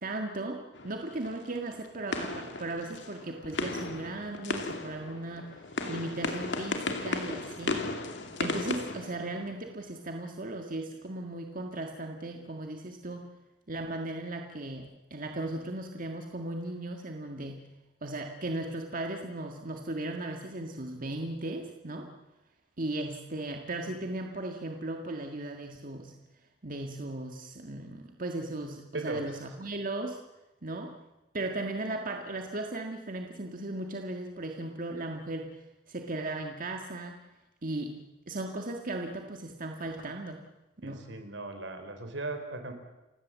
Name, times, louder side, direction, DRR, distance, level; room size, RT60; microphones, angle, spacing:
voice 1, 0.0-7.9 8.4-13.3 13.7-17.6 18.0-22.1 22.8-26.1 26.6-30.2 30.6-30.9 31.3-37.2 37.6-38.0 38.3-40.4 40.8-41.0, right 2 dB, 50° right, 3 dB, 1.8 m, -37 dB
sound 1, 0.7-9.8, left 2 dB, 70° left, 2.7 m, -36 dB
voice 2, 28.9-29.3 40.8-42.7, right 2 dB, 80° right, 7 dB, 4.1 m, -37 dB
29.5 x 16.5 x 7.5 m, 1.0 s
head